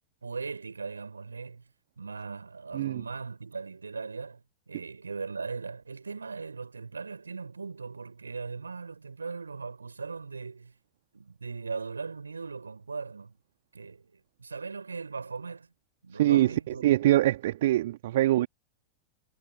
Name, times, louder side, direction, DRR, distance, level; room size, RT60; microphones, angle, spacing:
voice 1, 0.2-1.7 2.0-10.8 11.1-13.4 13.7-15.7 16.0-16.9, right 4 dB, 75° right, 4.8 m, -39 dB
voice 2, 16.1-18.5, right 14 dB, 55° right, 1.4 m, -24 dB
figure-of-eight pair, 90°, 0 cm